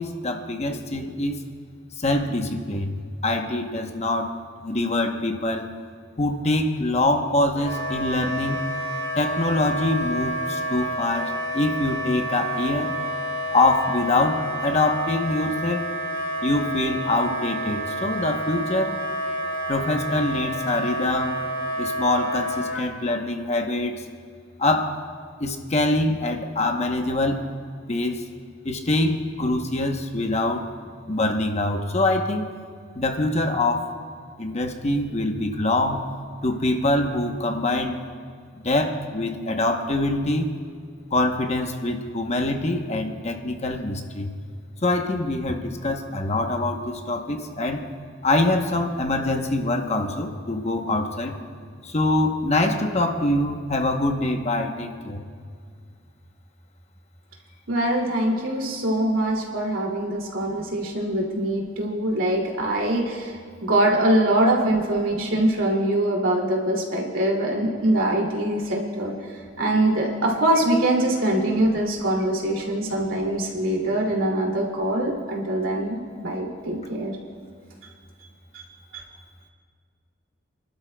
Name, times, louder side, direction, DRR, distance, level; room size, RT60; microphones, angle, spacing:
voice 1, 0.0-1.4 2.0-5.7 6.2-8.6 9.1-13.0 13.5-15.9 16.4-19.0 19.7-21.4 21.8-24.0 24.6-25.0 25.4-27.4 27.9-28.3 28.6-30.7 31.1-32.5 32.9-33.9 34.4-36.0 36.4-38.0 38.5-40.5 41.1-44.3 44.8-47.9 48.2-51.4 51.8-55.2, left 2 dB, 35° left, 4 dB, 0.9 m, -24 dB
Wind instrument woodwind instrument, 7.6-22.8, right 1 dB, 85° left, 3.5 m, -29 dB
voice 2, 57.7-63.4 63.6-69.1 69.6-77.2 78.5-78.6 78.9-79.0, right 1 dB, 80° right, -1 dB, 2.6 m, -23 dB
30.0 x 12.0 x 2.3 m, 2.1 s
head